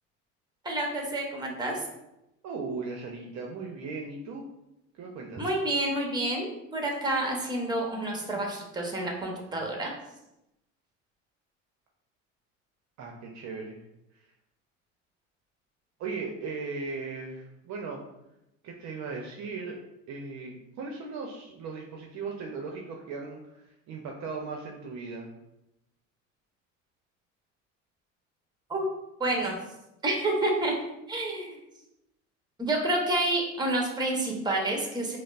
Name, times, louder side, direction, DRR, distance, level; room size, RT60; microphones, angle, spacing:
voice 1, 0.6-1.8 5.4-9.9 28.7-28.8 29.2-29.6 30.0-30.7 31.1-31.6 32.6-35.2, right 1 dB, 10° right, 1 dB, 0.9 m, -29 dB
voice 2, 2.4-4.5 4.9-5.5 13.0-13.8 14.1-14.2 16.0-18.0 18.6-19.8 20.1-25.3, right 4 dB, 45° right, 1 dB, 0.6 m, -37 dB
5.0 x 2.0 x 2.4 m, 0.89 s
hypercardioid pair, 75°, 39 cm